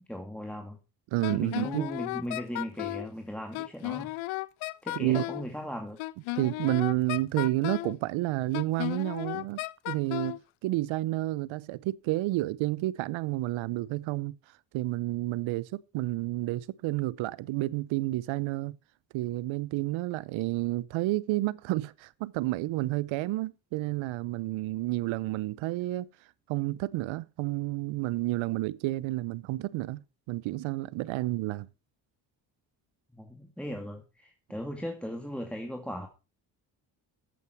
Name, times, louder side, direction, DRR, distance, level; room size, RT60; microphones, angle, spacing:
voice 1, 0.1-0.8 1.3-4.1 4.8-6.0 31.2-31.3 33.1-36.1, equal, ahead, 2.2 m, -38 dB
voice 2, 1.1-1.9 5.0-5.2 6.4-14.4 14.7-18.8 19.1-26.1 26.5-31.7, right 17 dB, 75° right, 0.8 m, -30 dB
Wind instrument woodwind instrument, 1.2-3.1 3.5-5.5 6.0-8.0 8.5-10.4, left 19 dB, 80° left, 0.6 m, -34 dB
14.0 x 8.3 x 4.6 m
supercardioid pair, 60°, 47 cm